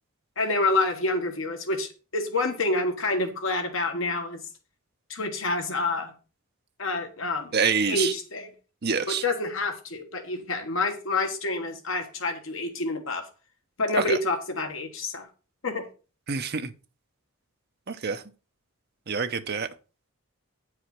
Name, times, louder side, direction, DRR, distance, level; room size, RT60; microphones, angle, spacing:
voice 1, 0.4-4.4 5.1-6.1 6.8-7.5 7.9-8.5 9.2-13.2 13.8-15.3 15.6-15.9, left 2 dB, 65° left, 1.3 m, -28 dB
voice 2, 7.5-8.1 8.8-9.2 14.1-14.2 16.3-16.7 17.9-18.2 19.1-19.7, right 5 dB, 45° right, 0.8 m, -26 dB
9.5 x 4.9 x 5.9 m
head